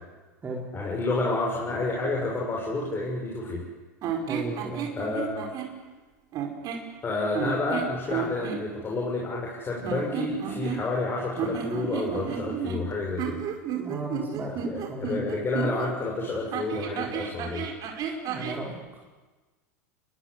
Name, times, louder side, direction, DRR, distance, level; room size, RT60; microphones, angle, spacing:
voice 1, 0.7-3.6 5.0-5.5 7.0-13.4 14.5-17.6, left 2 dB, 25° left, -2 dB, 6.9 m, -30 dB
sound 1, 4.0-5.7 6.3-6.9 7.3-8.6 9.8-11.0 11.3-15.9 16.5-18.6, right 7 dB, 45° right, 5.1 m, -32 dB
voice 2, 4.3-4.9 13.7-15.2 18.3-18.8, right 2 dB, 20° right, -1 dB, 4.7 m, -35 dB
30.0 x 21.5 x 8.3 m, 1.2 s
hypercardioid pair, 95°, 9 cm